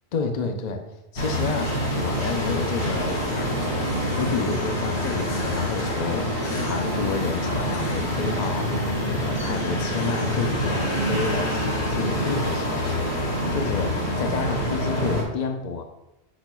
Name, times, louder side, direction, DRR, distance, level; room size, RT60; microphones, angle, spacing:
voice 1, 0.1-0.8 1.1-15.8, left 4 dB, 50° left, 5 dB, 0.6 m, -30 dB
sound 1, 1.2-15.2, equal, 80° left, 2.1 m, -26 dB
7.0 x 6.1 x 2.2 m, 0.93 s
omnidirectional pair, 1.1 m